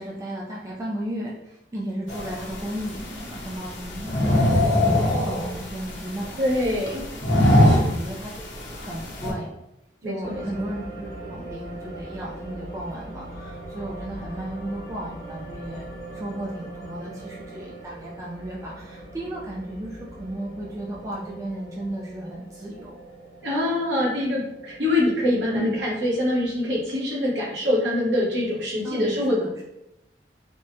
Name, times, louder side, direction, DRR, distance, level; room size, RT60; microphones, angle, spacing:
voice 1, 0.0-6.4 6.9-7.0 7.8-8.4 8.8-9.5 10.0-15.9 16.1-23.0 25.5-25.7 28.8-29.6, right 1 dB, 15° right, -4 dB, 0.3 m, -34 dB
sound 1, 2.1-9.3, left 1 dB, 85° left, 0.8 m, -23 dB
voice 2, 6.4-7.2 7.6-8.0 10.0-10.4 23.4-29.3, left 1 dB, 70° right, -5 dB, 0.9 m, -24 dB
sound 2, 10.2-26.8, right 1 dB, 50° right, 1.2 m, -41 dB
3.5 x 2.1 x 2.6 m, 0.88 s
head